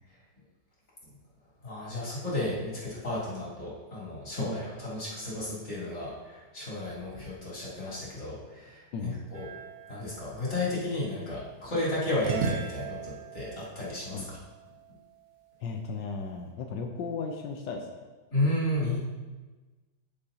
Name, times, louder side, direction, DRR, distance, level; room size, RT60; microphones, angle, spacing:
voice 1, 1.6-9.5 9.9-14.4 18.3-19.0, left 1 dB, 40° left, -7 dB, 3.4 m, -33 dB
sound 1, 9.3-11.5 12.2-15.1, right 6 dB, 65° right, 1.3 m, -38 dB
voice 2, 15.6-18.1, left 4 dB, 90° left, 2 dB, 1.4 m, -36 dB
12.5 x 6.8 x 2.8 m, 1.2 s
omnidirectional pair, 1.9 m